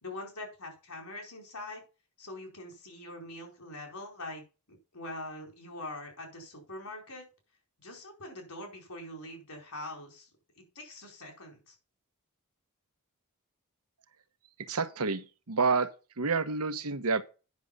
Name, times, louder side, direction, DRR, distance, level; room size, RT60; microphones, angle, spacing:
voice 1, 0.0-1.8 2.2-4.4 4.7-7.2 7.8-10.3 10.7-11.7, left 2 dB, 70° left, 4.6 m, -43 dB
voice 2, 14.6-15.9 16.2-17.2, right 4 dB, 75° right, 1.1 m, -29 dB
9.6 x 6.4 x 5.5 m
head